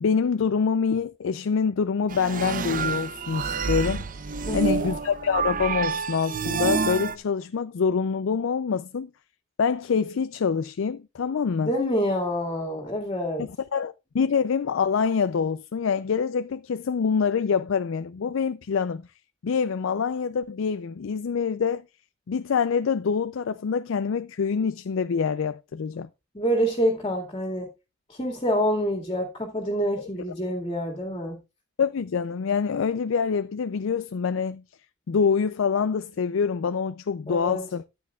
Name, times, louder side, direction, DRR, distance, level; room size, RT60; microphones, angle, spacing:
voice 1, 0.0-4.1 4.5-9.1 9.6-11.7 13.4-19.0 19.4-21.8 22.3-26.1 30.0-30.1 31.8-34.6 35.1-37.8, left 6 dB, 80° left, 0.4 m, -25 dB
sound 1, 2.1-7.2, right 5 dB, 45° right, 0.6 m, -28 dB
voice 2, 4.5-4.9 11.6-13.4 26.3-27.7 28.1-31.4 37.3-37.6, equal, 25° left, 2.0 m, -27 dB
13.5 x 9.6 x 2.3 m
head